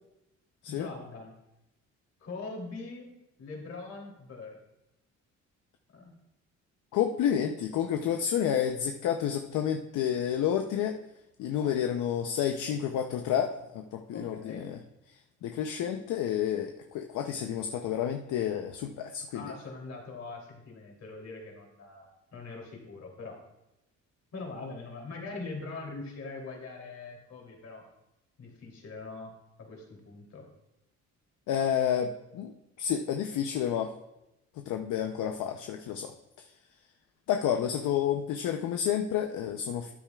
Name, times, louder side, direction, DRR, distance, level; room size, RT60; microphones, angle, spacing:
voice 1, 0.7-1.3 2.2-3.1 3.4-4.6 5.9-6.1 11.6-11.7 14.1-14.7 19.3-23.4 24.3-27.8 28.4-29.3 29.6-30.5, left 3 dB, 60° left, 0 dB, 2.9 m, -42 dB
voice 2, 6.9-11.0 11.4-14.8 15.4-19.5 31.5-32.5 32.8-33.9 34.6-36.1 37.3-39.9, left 9 dB, 80° left, 5 dB, 0.6 m, -30 dB
13.0 x 8.8 x 2.3 m, 0.90 s
cardioid pair, 90°, 30 cm